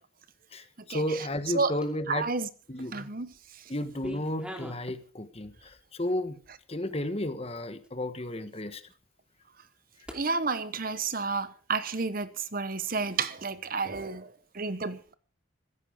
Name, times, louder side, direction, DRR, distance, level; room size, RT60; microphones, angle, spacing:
voice 1, 0.5-2.3 2.7-3.1 3.7-6.4 6.7-8.8, left 1 dB, 30° left, 1.3 m, -33 dB
sound 1, 1.8-2.2 2.8-3.4 3.7-4.9 5.3-5.8 6.4-6.5 7.1-7.2 7.8-7.9 10.0-10.2, equal, 5° right, 2.7 m, -42 dB
voice 2, 2.1-2.5 2.9-3.3 10.1-15.1, right 4 dB, 45° right, 1.0 m, -31 dB
16.0 x 14.5 x 5.1 m
head